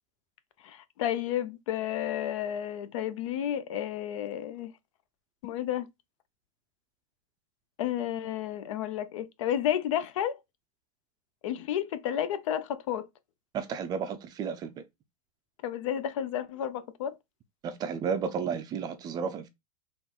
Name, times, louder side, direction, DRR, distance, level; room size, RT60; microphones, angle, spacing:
voice 1, 0.6-4.7 5.4-5.9 7.8-10.4 11.4-13.1 15.6-17.2, left 10 dB, 60° left, 0.6 m, -31 dB
voice 2, 13.5-14.7 17.6-19.5, right 6 dB, 20° right, 0.5 m, -32 dB
3.8 x 2.5 x 4.3 m
supercardioid pair, 150°, 18 cm